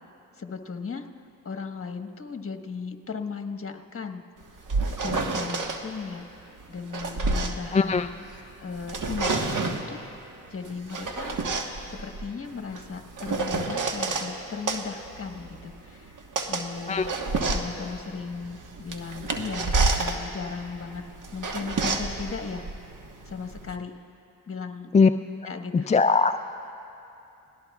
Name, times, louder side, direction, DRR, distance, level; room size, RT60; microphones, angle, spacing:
voice 1, 0.3-4.2 4.9-8.1 8.6-10.0 10.5-11.4 11.9-17.0 17.5-21.0 21.3-22.6 23.2-23.9 24.5-24.9 25.4-26.0, left 5 dB, 35° left, 5 dB, 1.5 m, -37 dB
sound 1, 4.4-5.8 6.6-8.4 8.7-9.9 10.6-14.3 14.7-23.8, right 3 dB, 55° right, 1.5 m, -29 dB
voice 2, 7.7-8.1 16.9-17.1 24.9-25.1 25.9-26.4, left 4 dB, 20° left, 9 dB, 0.3 m, -19 dB
29.0 x 19.0 x 2.4 m, 2.7 s
supercardioid pair, 50°, 37 cm